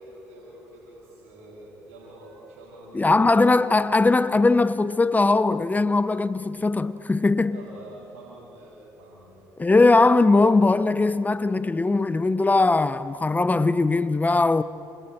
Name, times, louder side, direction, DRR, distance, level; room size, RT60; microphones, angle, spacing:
voice 1, 0.0-3.3 7.5-9.4, right 1 dB, 90° right, 6.8 m, -46 dB
voice 2, 2.9-7.6 9.6-14.6, left 3 dB, 20° left, 0.8 m, -20 dB
30.0 x 29.0 x 4.6 m
supercardioid pair, 60°, 8 cm